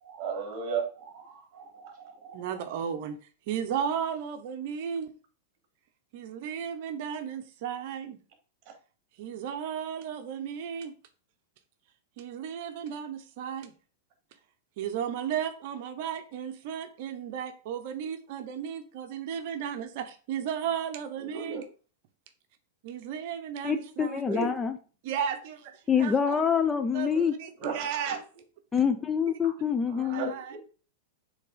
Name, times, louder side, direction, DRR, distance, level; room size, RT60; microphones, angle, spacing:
voice 1, 0.0-2.6 21.2-21.6 24.2-24.5 27.6-28.2 29.4-29.5 29.9-30.6, right 5 dB, 40° right, 2.9 m, -36 dB
voice 2, 2.3-3.2 3.5-5.1 6.1-8.2 9.2-10.9 12.2-13.7 14.8-21.6 22.8-24.2 25.0-26.4 26.9-28.2 29.3-29.4 30.0-30.6, right 8 dB, 60° right, 0.9 m, -34 dB
voice 3, 23.6-24.8 25.9-27.3 28.7-30.3, left 7 dB, 15° left, 0.6 m, -26 dB
7.6 x 3.5 x 5.0 m
hypercardioid pair, 130°, 0 cm